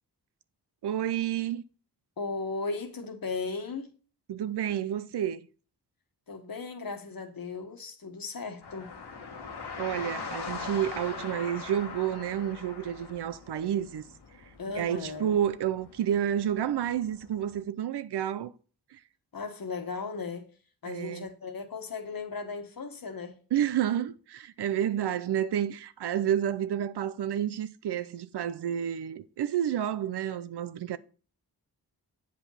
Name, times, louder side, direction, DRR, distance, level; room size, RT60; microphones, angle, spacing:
voice 1, 0.8-1.6 4.3-5.4 9.8-14.0 14.8-18.5 20.9-21.3 23.5-31.0, right 10 dB, 85° right, 0.6 m, -30 dB
voice 2, 2.2-3.9 6.3-9.0 14.6-15.4 19.3-20.5 20.8-23.4, left 4 dB, 60° left, 1.5 m, -36 dB
sound 1, 8.6-17.6, left 4 dB, 75° left, 1.5 m, -42 dB
8.0 x 5.1 x 5.7 m
cardioid pair, 55°, 39 cm